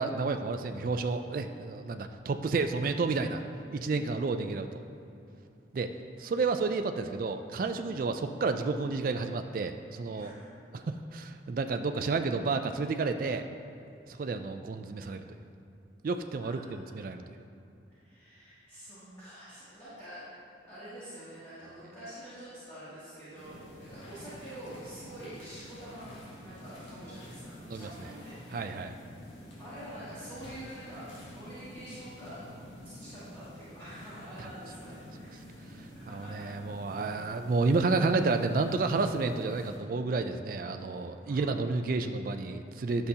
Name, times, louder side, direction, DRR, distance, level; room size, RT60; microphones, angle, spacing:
voice 1, 0.0-3.4 3.7-4.8 5.7-5.9 6.2-10.3 10.7-13.5 14.1-15.2 16.0-17.4 27.7-28.1 28.5-28.9 34.4-34.5 35.8-43.1, right 3 dB, 45° right, 7 dB, 0.3 m, -31 dB
voice 2, 3.8-4.2 10.1-10.4 16.4-17.0 17.9-20.2 20.7-28.8 29.6-32.4 32.8-35.4 35.9-36.7 40.9-41.0 41.2-41.6, right 1 dB, 15° left, -14 dB, 1.8 m, -47 dB
sound 1, 23.4-39.8, left 1 dB, 80° left, 1.7 m, -48 dB
10.5 x 6.7 x 2.8 m, 2.7 s
head